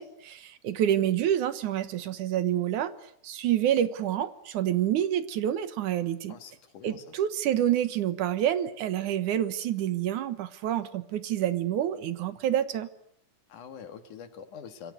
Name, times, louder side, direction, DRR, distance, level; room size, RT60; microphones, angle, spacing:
voice 1, 0.0-2.9 3.2-6.4 6.8-12.9, right 11 dB, 75° right, 13 dB, 2.7 m, -28 dB
voice 2, 6.3-7.0 13.5-14.9, left 7 dB, 75° left, 8 dB, 3.6 m, -45 dB
27.5 x 22.5 x 9.5 m, 0.70 s
omnidirectional pair, 3.6 m